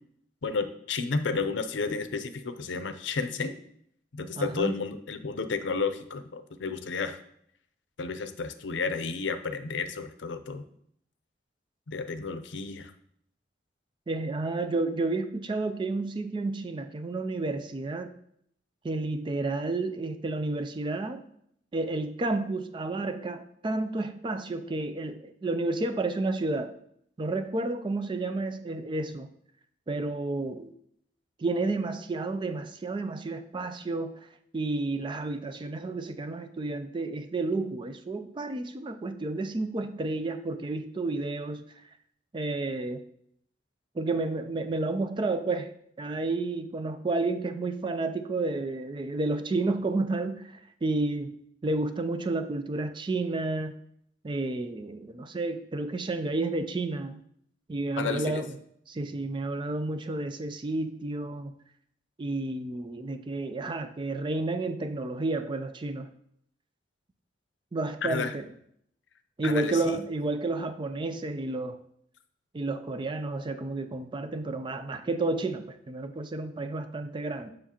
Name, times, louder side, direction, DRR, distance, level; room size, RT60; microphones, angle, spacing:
voice 1, 0.4-3.6 4.1-7.2 8.0-10.7 11.9-12.9 58.0-58.4 68.0-68.3 69.4-70.0, left 4 dB, 80° left, 10 dB, 0.6 m, -32 dB
voice 2, 4.4-4.7 14.1-18.1 18.8-21.2 21.7-26.7 27.2-29.3 29.9-30.7 31.4-34.3 34.5-41.7 42.3-43.1 43.9-51.4 51.6-53.8 54.2-57.2 57.7-58.6 58.9-61.5 62.2-66.1 67.7-68.5 69.4-71.8 72.5-77.5, right 2 dB, 25° right, 9 dB, 0.4 m, -31 dB
7.1 x 6.4 x 2.9 m, 0.68 s
head